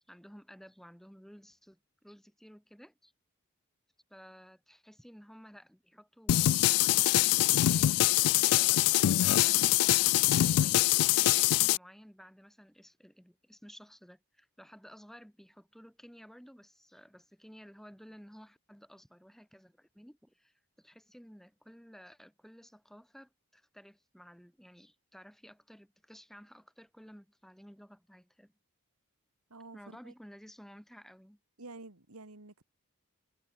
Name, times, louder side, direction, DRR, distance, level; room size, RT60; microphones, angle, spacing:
voice 1, 0.0-3.1 4.1-6.4 6.8-28.5 29.7-31.4, equal, ahead, 5.0 m, -54 dB
sound 1, 6.3-11.8, left 14 dB, 85° left, 0.3 m, -24 dB
voice 2, 29.5-30.1 31.6-32.6, right 2 dB, 80° right, 2.5 m, -49 dB
head